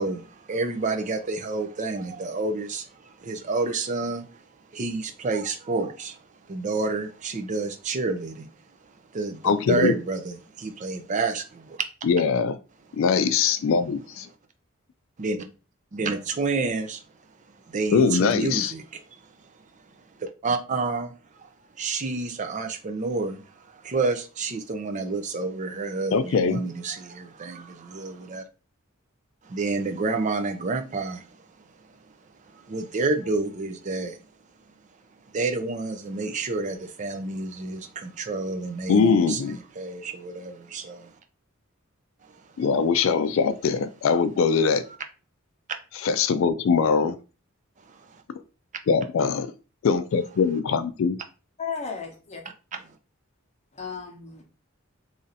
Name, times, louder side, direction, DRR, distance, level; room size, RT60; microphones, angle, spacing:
voice 1, 0.0-4.4 4.7-6.2 6.5-8.5 9.1-11.8 15.2-15.5 15.9-17.0 17.5-19.2 20.2-21.1 21.4-21.5 21.8-28.4 29.4-31.3 32.5-34.2 35.3-41.1 42.2-42.5 47.8-48.2, right 3 dB, 35° right, 0.5 m, -29 dB
voice 2, 9.4-9.9 12.0-12.6 12.9-14.3 17.9-18.7 26.1-26.6 38.9-39.6 42.6-44.8 46.0-47.2 48.9-49.5 49.8-51.2, left 5 dB, 65° left, 0.3 m, -22 dB
voice 3, 51.6-52.4 53.7-54.4, left 5 dB, 30° left, 0.9 m, -34 dB
3.2 x 2.6 x 4.0 m
head